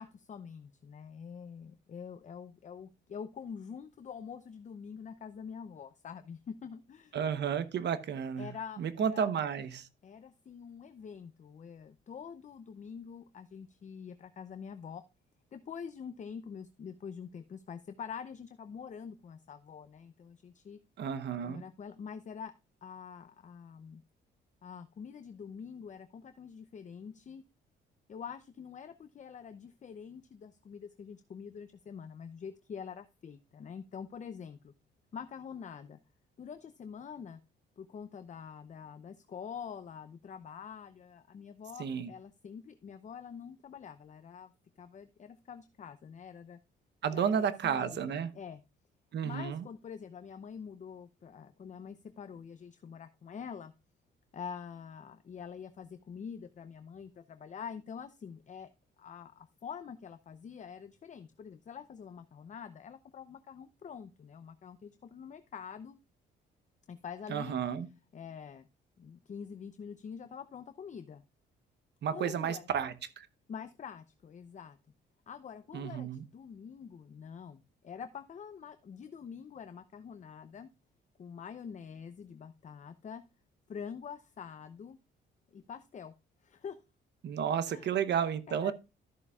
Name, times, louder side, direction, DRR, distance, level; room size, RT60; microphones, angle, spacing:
voice 1, 0.0-7.2 8.4-9.3 10.0-15.0 15.5-20.8 21.4-22.5 22.8-24.0 24.6-27.4 28.1-34.7 35.1-36.0 36.4-37.4 37.8-44.5 44.8-46.6 47.1-48.6 49.2-53.7 54.3-58.7 59.0-66.0 66.9-67.6 68.1-68.7 69.0-71.2 72.1-72.7 73.5-74.8 75.3-80.7 81.2-83.2 83.7-85.0 85.5-86.1 86.4-86.8 87.7-87.9 88.5-88.7, left 7 dB, 40° left, 0.6 m, -46 dB
voice 2, 7.1-8.5 8.8-9.9 21.0-21.6 41.8-42.1 47.0-48.3 49.1-49.6 67.3-67.9 72.0-73.3 75.7-76.2 87.2-88.7, right 8 dB, 60° right, 0.9 m, -32 dB
13.5 x 6.7 x 2.3 m
cardioid pair, 90°, 20 cm